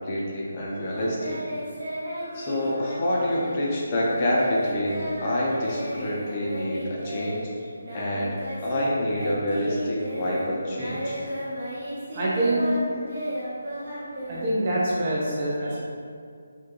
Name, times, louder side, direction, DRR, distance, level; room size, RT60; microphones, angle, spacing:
voice 1, 0.0-1.4 2.3-7.5 7.9-11.2, left 1 dB, 30° left, -5 dB, 0.4 m, -27 dB
Singing, 0.9-8.9 9.1-15.0, equal, 55° right, 1.0 m, -34 dB
voice 2, 12.1-12.8 14.3-15.8, right 1 dB, 35° right, -5 dB, 0.5 m, -25 dB
2.2 x 2.1 x 2.8 m, 2.2 s
figure-of-eight pair, 160°, 0 cm